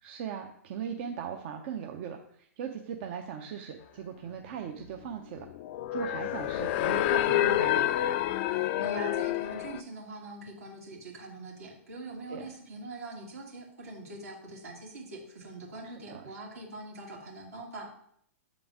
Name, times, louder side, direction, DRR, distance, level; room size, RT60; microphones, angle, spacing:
voice 1, 0.0-5.5 5.9-7.9 12.3-12.5 15.8-16.4, right 7 dB, 50° right, 4 dB, 0.6 m, -39 dB
sound 1, 5.4-9.8, left 13 dB, 45° left, 0.4 m, -28 dB
voice 2, 8.5-17.9, right 2 dB, 75° right, -1 dB, 2.2 m, -43 dB
7.0 x 3.8 x 4.8 m, 0.67 s
hypercardioid pair, 115°, 8 cm